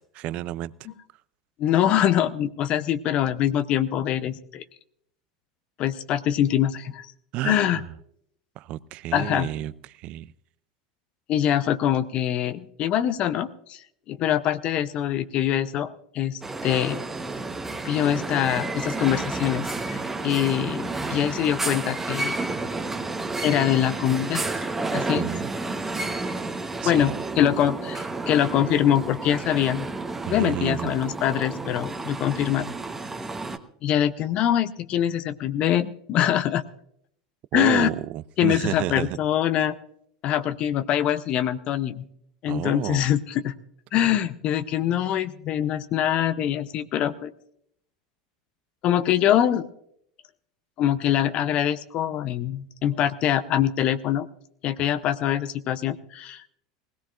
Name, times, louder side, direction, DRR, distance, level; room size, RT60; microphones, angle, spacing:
voice 1, 0.1-0.7 7.3-7.8 8.6-10.3 25.2-25.5 26.8-27.2 30.2-31.0 37.5-39.2 42.5-43.1, right 14 dB, 50° right, 0.4 m, -31 dB
voice 2, 1.6-4.6 5.8-7.1 7.4-7.8 9.1-9.5 11.3-13.8 14.1-17.0 17.8-22.4 23.4-25.3 26.8-29.9 30.3-32.7 33.8-36.6 37.5-37.9 38.4-39.8 40.2-42.1 42.4-43.5 43.9-47.3 48.8-49.6 50.8-54.3 54.6-56.6, left 11 dB, 45° left, 0.7 m, -24 dB
sound 1, 16.4-33.6, right 3 dB, 10° right, 1.0 m, -31 dB
20.0 x 17.0 x 2.5 m
hypercardioid pair, 85°, 3 cm